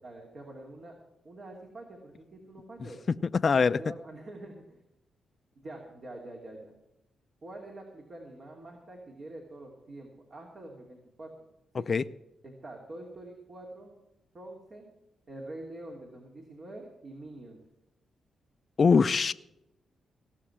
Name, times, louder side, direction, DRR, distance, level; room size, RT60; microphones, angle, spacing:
voice 1, 0.0-0.9 1.2-3.0 3.8-4.8 5.6-6.7 7.4-11.3 11.7-11.9 12.4-13.9 14.3-14.9 15.3-17.6, right 1 dB, 50° right, 0 dB, 2.8 m, -45 dB
voice 2, 3.4-3.8 11.9-12.0 18.8-19.3, left 5 dB, 50° left, 13 dB, 0.5 m, -22 dB
17.0 x 6.5 x 8.6 m, 0.89 s
cardioid pair, 60°, 0 cm